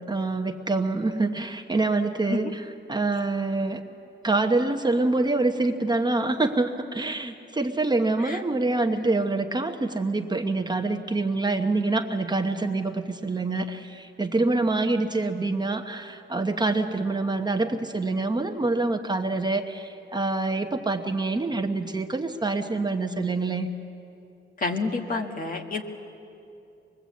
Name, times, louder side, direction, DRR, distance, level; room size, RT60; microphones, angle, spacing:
voice 1, 0.1-2.6 2.9-3.8 4.2-23.7, right 2 dB, 20° right, 5 dB, 1.0 m, -26 dB
voice 2, 24.6-25.8, left 3 dB, 45° left, 3 dB, 1.7 m, -29 dB
24.5 x 21.5 x 8.4 m, 2.7 s
wide cardioid pair, 140°, 20 cm